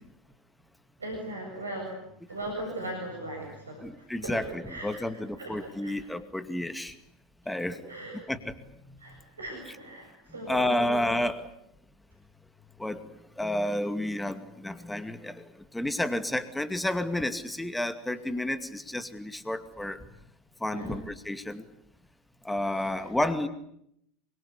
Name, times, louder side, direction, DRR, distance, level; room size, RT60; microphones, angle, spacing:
voice 1, 1.0-4.4 4.7-5.0 5.4-6.0 7.7-8.2 9.0-11.3 20.7-20.9 23.0-23.1, right 1 dB, 85° right, 1 dB, 7.3 m, -39 dB
voice 2, 3.8-6.9 7.5-7.8 8.3-8.5 10.5-11.5 12.8-13.0 13.4-20.0 20.6-21.6 22.4-23.5, left 1 dB, 5° left, 10 dB, 2.3 m, -31 dB
27.0 x 24.5 x 8.4 m, 0.75 s
figure-of-eight pair, 75°, 0 cm